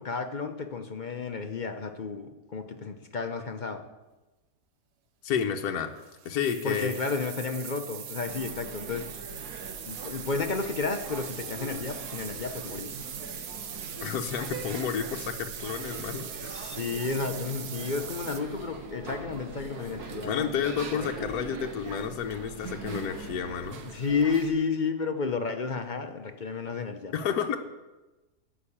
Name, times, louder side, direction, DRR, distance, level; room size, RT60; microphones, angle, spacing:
voice 1, 0.0-3.9 6.6-9.2 9.9-13.0 16.4-21.1 23.9-27.1, left 4 dB, 45° left, 6 dB, 0.6 m, -32 dB
voice 2, 5.2-5.9 6.2-6.9 14.0-16.5 20.2-23.8 27.1-27.6, left 7 dB, 70° left, 4 dB, 1.3 m, -31 dB
sound 1, 6.0-18.4, right 8 dB, 90° right, 1.5 m, -41 dB
sound 2, 8.3-24.5, right 4 dB, 70° right, 1.8 m, -42 dB
13.0 x 5.8 x 8.6 m, 1.1 s
omnidirectional pair, 1.7 m